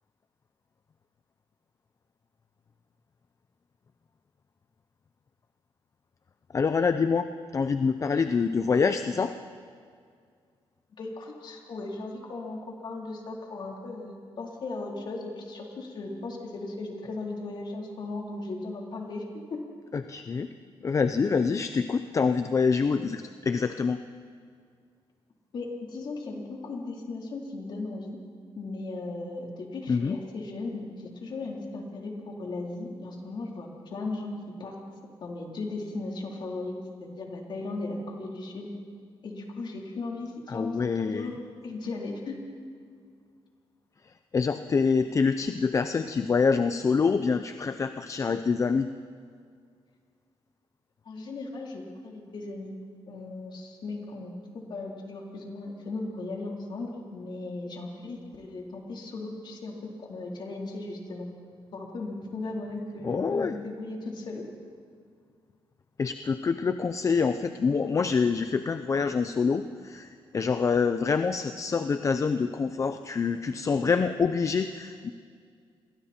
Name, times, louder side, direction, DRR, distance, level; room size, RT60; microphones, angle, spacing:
voice 1, 6.5-9.3 19.9-20.5 20.8-24.0 29.9-30.2 40.5-41.3 44.0-48.9 63.0-63.5 66.0-75.1, left 5 dB, 30° left, 9 dB, 0.6 m, -26 dB
voice 2, 11.0-19.6 25.5-28.2 28.6-34.3 34.6-34.8 35.2-36.7 37.0-38.7 39.2-41.3 41.6-42.4 51.1-52.7 53.1-61.3 61.7-64.5, left 2 dB, 50° left, -1 dB, 3.8 m, -37 dB
29.0 x 22.5 x 4.4 m, 2.2 s
cardioid pair, 140°, 10 cm